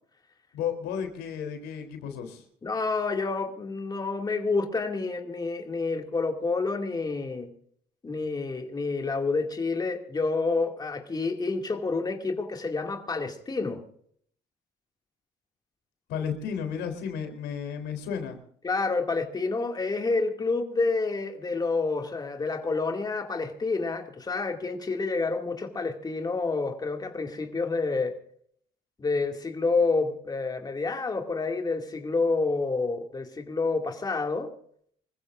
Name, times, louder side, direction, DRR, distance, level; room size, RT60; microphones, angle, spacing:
voice 1, 0.5-2.4 16.1-18.4, left 7 dB, 85° left, 3.6 m, -33 dB
voice 2, 2.6-7.5 8.0-13.8 18.6-28.1 29.0-34.5, left 3 dB, 25° left, 2.4 m, -28 dB
26.0 x 15.0 x 2.6 m
cardioid pair, 110°, 17 cm